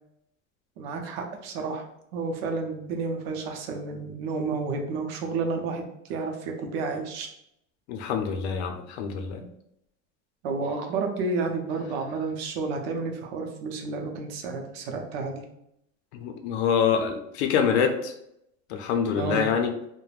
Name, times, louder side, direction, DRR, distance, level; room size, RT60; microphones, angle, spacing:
voice 1, 0.8-1.9 2.1-7.3 10.4-15.4 19.1-19.4, right 4 dB, 65° right, 3 dB, 0.6 m, -31 dB
voice 2, 7.9-9.4 16.1-18.1 18.7-19.7, left 7 dB, 80° left, 5 dB, 0.5 m, -25 dB
3.1 x 2.1 x 2.4 m, 0.78 s
cardioid pair, 170°, 33 cm